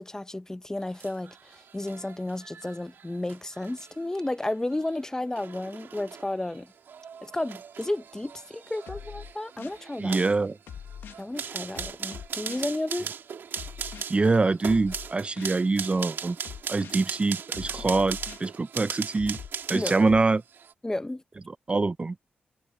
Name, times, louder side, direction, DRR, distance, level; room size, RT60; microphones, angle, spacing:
voice 1, 0.0-6.7 7.2-10.2 11.2-13.1 19.7-19.9 20.8-21.2, left 1 dB, 15° left, 0.8 m, -32 dB
sound 1, 0.8-20.1 20.5-20.7, right 7 dB, 80° right, 1.7 m, -39 dB
sound 2, 8.9-9.8 10.7-11.2 11.7-12.7 13.6-14.0 14.6-15.6 16.4-17.0 17.5-18.5 19.2-20.3, left 8 dB, 90° left, 0.9 m, -42 dB
voice 2, 10.0-10.6 14.1-16.4 16.7-19.4 19.7-20.4 21.5-22.1, right 3 dB, 30° right, 0.5 m, -24 dB
cardioid pair, 75°, 4 cm